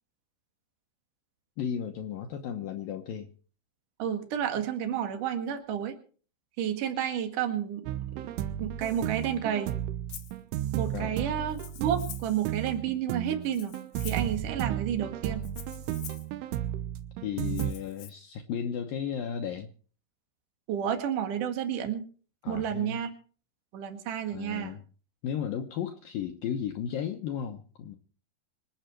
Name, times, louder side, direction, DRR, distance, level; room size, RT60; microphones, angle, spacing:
voice 1, 1.6-3.3 10.9-11.2 17.2-19.7 22.4-23.0 24.3-24.8 25.2-28.0, left 8 dB, 90° left, 4 dB, 1.9 m, -34 dB
voice 2, 4.0-6.0 6.6-7.8 8.1-8.3 8.6-9.7 10.8-13.7 14.0-15.4 20.7-22.1 22.5-23.1 23.7-24.7, right 9 dB, 55° right, 6 dB, 2.8 m, -31 dB
sound 1, 7.9-17.7, right 11 dB, 80° right, 3.5 m, -33 dB
Rattle (instrument), 10.1-10.4 11.5-12.4 13.4-14.3 15.4-16.3 17.4-18.1, left 10 dB, 70° left, 2.0 m, -46 dB
26.0 x 9.0 x 4.6 m, 0.42 s
omnidirectional pair, 5.6 m